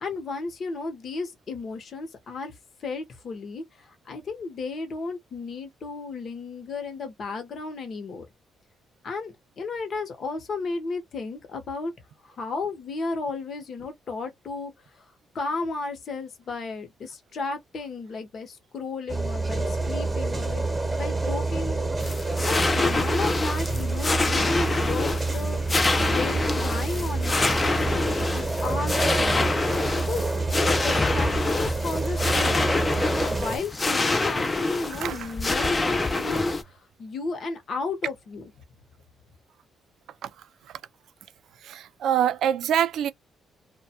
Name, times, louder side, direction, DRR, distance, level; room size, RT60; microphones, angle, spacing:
voice 1, 0.0-2.5 2.8-8.3 9.0-11.9 12.2-15.1 15.3-20.6 21.0-21.8 22.5-29.5 30.1-30.2 30.5-32.7 33.2-38.5, left 3 dB, 55° left, 0.8 m, -34 dB
sound 1, 19.1-33.6, right 3 dB, 15° right, 0.9 m, -27 dB
sound 2, 22.0-36.6, left 3 dB, 25° left, 0.5 m, -26 dB
voice 2, 41.6-43.1, right 10 dB, 75° right, 0.3 m, -25 dB
2.2 x 2.2 x 2.7 m
cardioid pair, 90°, 0 cm